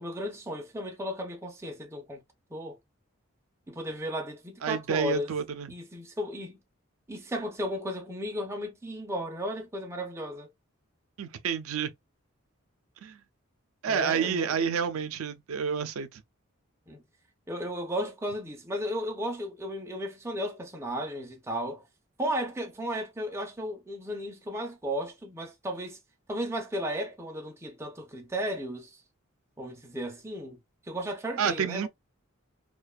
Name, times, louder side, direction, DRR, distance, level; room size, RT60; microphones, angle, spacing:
voice 1, 0.0-2.2 2.5-2.8 3.7-5.3 5.7-6.6 7.1-10.5 13.9-14.7 16.9-17.0 17.5-21.8 22.2-26.0 26.3-29.0 29.6-30.6 30.9-31.9, equal, 10° right, 0.4 m, -34 dB
voice 2, 4.6-5.7 11.2-11.9 13.0-13.2 13.8-16.2 31.4-31.9, right 7 dB, 75° right, 0.4 m, -29 dB
2.5 x 2.2 x 2.2 m
head